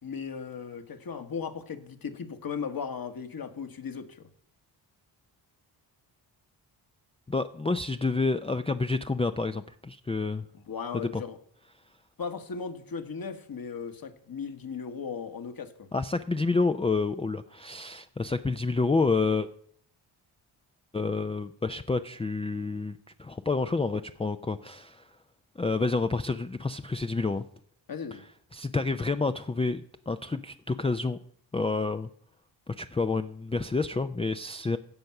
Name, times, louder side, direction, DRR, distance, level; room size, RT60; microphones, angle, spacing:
voice 1, 0.0-4.3 10.5-11.4 12.2-15.9 27.9-28.2, left 6 dB, 45° left, 8 dB, 1.5 m, -37 dB
voice 2, 7.3-10.4 11.1-11.2 15.9-19.5 20.9-25.1 25.6-27.4 28.5-31.2 31.5-32.1 32.7-34.8, left 3 dB, 15° left, 8 dB, 0.5 m, -29 dB
16.0 x 5.3 x 5.9 m, 0.64 s
cardioid pair, 60°, 48 cm